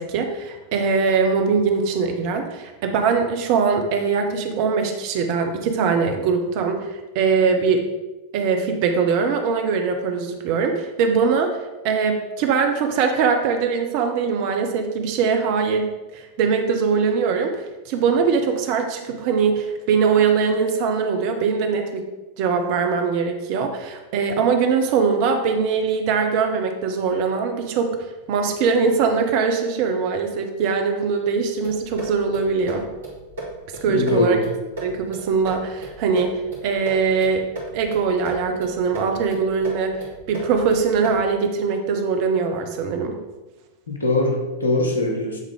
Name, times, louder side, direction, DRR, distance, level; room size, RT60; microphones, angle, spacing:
voice 1, 0.0-7.8 8.3-11.6 11.8-22.0 22.4-27.9 28.3-32.8 33.8-34.4 34.8-37.5 37.7-40.0 40.3-43.1, right 5 dB, 45° right, 5 dB, 0.8 m, -21 dB
sound 1, 31.6-41.4, right 2 dB, 65° right, 2.4 m, -36 dB
voice 2, 33.9-34.5 43.9-45.4, left 2 dB, 75° left, 0 dB, 1.3 m, -22 dB
9.2 x 3.7 x 3.6 m, 1.1 s
figure-of-eight pair, 90°, 0 cm